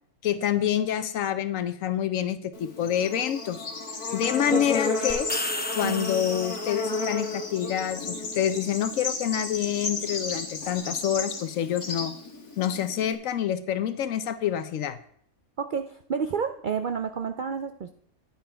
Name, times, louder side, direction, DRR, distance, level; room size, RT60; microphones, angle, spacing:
voice 1, 0.2-3.7 4.1-5.3 5.7-12.1 12.6-15.0, left 10 dB, 70° left, 12 dB, 1.0 m, -27 dB
Bird / Insect, 2.5-13.1, left 3 dB, 90° left, 2.2 m, -33 dB
sound 1, 5.1-7.0, left 1 dB, 10° left, 0.5 m, -33 dB
voice 2, 15.6-17.9, right 6 dB, 80° right, 7 dB, 0.4 m, -30 dB
9.6 x 9.3 x 3.3 m, 0.64 s
omnidirectional pair, 1.5 m